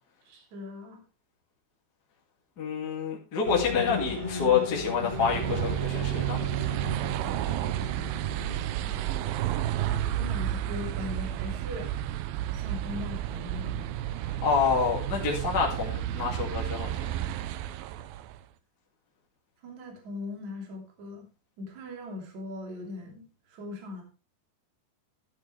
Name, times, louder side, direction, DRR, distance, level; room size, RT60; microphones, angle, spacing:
voice 1, 0.3-1.0 10.1-11.9 12.5-14.0 19.6-21.3 21.6-24.0, left 2 dB, 45° right, 2 dB, 3.9 m, -40 dB
voice 2, 2.6-6.4 14.3-17.2, left 6 dB, 30° left, -3 dB, 2.1 m, -28 dB
sound 1, 3.4-10.8, left 3 dB, 15° right, 2.0 m, -37 dB
sound 2, 4.9-18.4, right 12 dB, 80° right, 2.1 m, -31 dB
13.0 x 10.0 x 3.3 m, 0.30 s
omnidirectional pair, 4.8 m